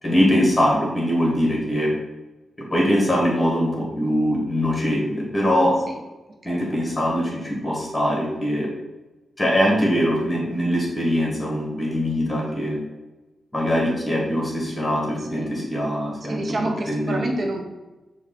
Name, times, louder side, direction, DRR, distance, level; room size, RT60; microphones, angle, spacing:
voice 1, 0.0-1.9 2.6-5.7 6.4-8.7 9.4-12.8 13.5-17.3, equal, 15° left, -2 dB, 1.5 m, -22 dB
voice 2, 16.3-17.7, right 1 dB, 50° right, 1 dB, 0.8 m, -28 dB
5.7 x 2.4 x 3.6 m, 1.1 s
cardioid pair, 95°, 0 cm